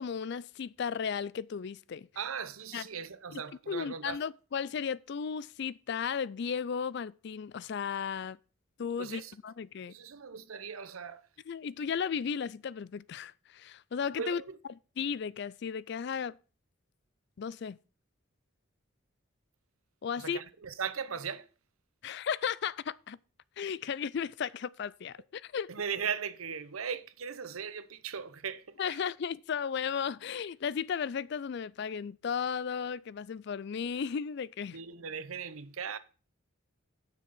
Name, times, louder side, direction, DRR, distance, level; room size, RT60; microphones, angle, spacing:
voice 1, 0.0-2.1 2.7-2.9 3.3-3.4 3.7-8.4 8.8-9.9 11.5-14.4 15.0-16.4 17.4-17.8 20.0-20.4 22.0-23.2 23.6-25.7 28.8-34.8, left 7 dB, 55° left, 0.4 m, -35 dB
voice 2, 2.2-4.2 9.0-9.3 9.9-11.3 14.2-14.6 20.2-21.5 25.7-29.0 34.7-36.0, right 6 dB, 90° right, 0.8 m, -38 dB
7.7 x 6.2 x 7.0 m
head